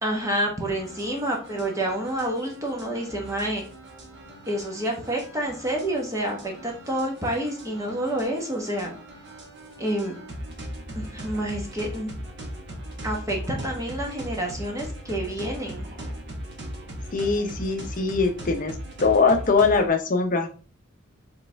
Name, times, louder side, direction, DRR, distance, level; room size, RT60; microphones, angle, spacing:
voice 1, 0.0-3.6 4.5-8.9 9.8-10.1 10.9-12.1 13.0-15.9, right 1 dB, 15° right, 0 dB, 1.0 m, -28 dB
sound 1, 0.7-19.9, right 1 dB, 55° right, 1.1 m, -39 dB
voice 2, 17.1-18.7 19.0-20.5, left 4 dB, 40° left, 5 dB, 0.7 m, -22 dB
4.9 x 3.3 x 3.3 m, 0.39 s
head